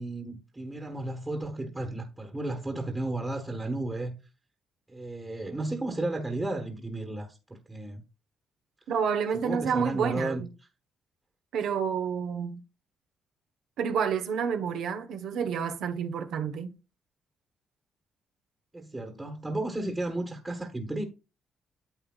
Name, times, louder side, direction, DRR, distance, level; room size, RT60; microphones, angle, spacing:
voice 1, 0.0-4.2 4.9-8.0 9.4-10.4 18.7-21.0, right 2 dB, 15° right, 1.4 m, -33 dB
voice 2, 8.9-10.5 11.5-12.6 13.8-16.7, right 7 dB, 80° right, 1.1 m, -29 dB
9.6 x 7.9 x 2.4 m
cardioid pair, 90°, 0 cm